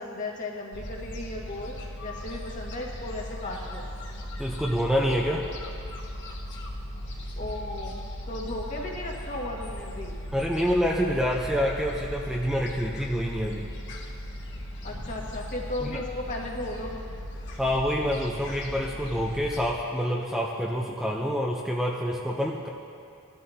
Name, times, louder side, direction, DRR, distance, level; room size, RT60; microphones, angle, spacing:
voice 1, 0.0-3.8 7.4-8.0 8.3-10.2 14.8-17.1, left 2 dB, 35° left, -2 dB, 1.7 m, -35 dB
Gull seagull, 0.7-19.7, equal, 55° left, 1.4 m, -38 dB
voice 2, 4.4-5.4 10.3-13.7 15.8-16.0 17.6-22.7, equal, ahead, -3 dB, 0.7 m, -27 dB
20.0 x 12.5 x 2.9 m, 2.5 s
head